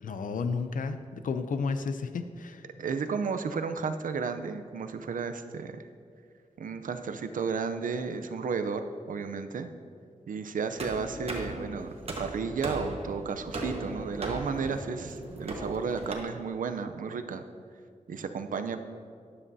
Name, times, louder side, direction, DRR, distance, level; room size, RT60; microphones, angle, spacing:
voice 1, 0.0-2.6, left 4 dB, 80° left, 10 dB, 0.5 m, -32 dB
voice 2, 2.8-5.8 6.6-9.7 10.3-11.9 12.2-17.4 18.1-18.8, right 5 dB, 85° right, 9 dB, 0.6 m, -33 dB
sound 1, 10.8-16.1, right 1 dB, 50° right, 1.3 m, -38 dB
12.5 x 10.0 x 2.7 m, 2.2 s
wide cardioid pair, 120°, 14 cm